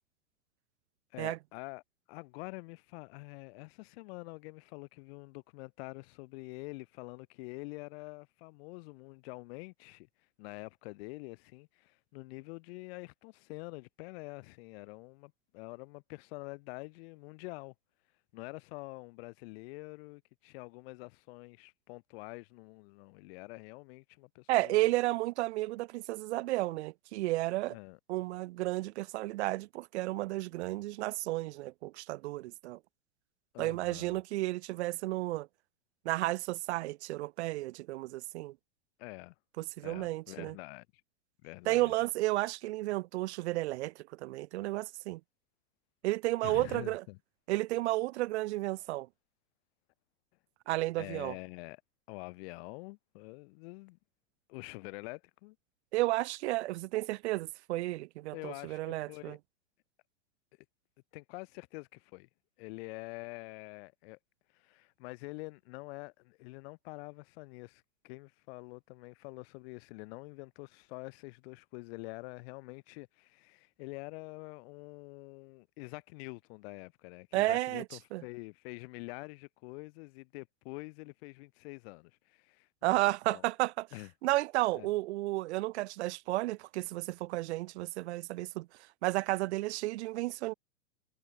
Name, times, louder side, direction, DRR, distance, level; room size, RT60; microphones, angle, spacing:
voice 1, 1.1-1.8 2.1-10.1 10.4-17.7 18.3-24.8 27.7-28.0 33.5-34.2 39.0-39.3 39.8-40.9 41.4-41.9 46.4-47.2 51.0-51.8 52.1-54.0 54.5-55.6 58.3-59.4 61.1-62.3 62.6-64.2 64.5-83.4 83.9-84.1 84.7-84.9, left 26 dB, 55° left, 7.4 m, -46 dB
voice 2, 24.5-27.7 28.1-32.8 33.6-35.5 36.1-38.5 39.6-40.5 41.7-45.2 46.0-47.0 47.5-49.1 50.7-51.3 55.9-59.4 77.3-77.8 78.1-78.2 82.8-83.9 84.2-88.7 89.0-90.5, right 18 dB, 65° right, 0.5 m, -32 dB
hypercardioid pair, 130°, 37 cm